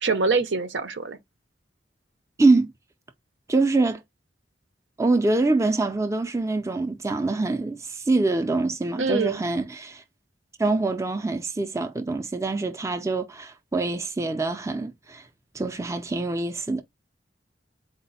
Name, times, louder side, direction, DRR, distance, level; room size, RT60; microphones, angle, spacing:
voice 1, 0.0-1.2 9.0-9.4, right 4 dB, 80° right, 0.7 m, -24 dB
voice 2, 2.4-2.7 3.5-4.0 5.0-10.0 10.6-15.3 15.5-16.8, right 3 dB, 15° right, 0.4 m, -24 dB
4.1 x 2.0 x 3.9 m
head